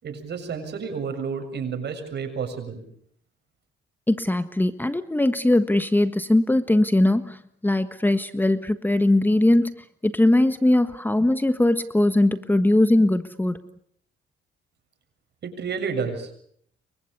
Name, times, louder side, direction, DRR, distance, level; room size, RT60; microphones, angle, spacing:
voice 1, 0.0-2.8 15.4-16.4, right 5 dB, 60° right, 7 dB, 7.2 m, -30 dB
voice 2, 4.1-9.7 10.0-13.6, left 1 dB, 10° left, 11 dB, 1.4 m, -20 dB
29.5 x 24.0 x 6.9 m, 0.67 s
cardioid pair, 90°, 20 cm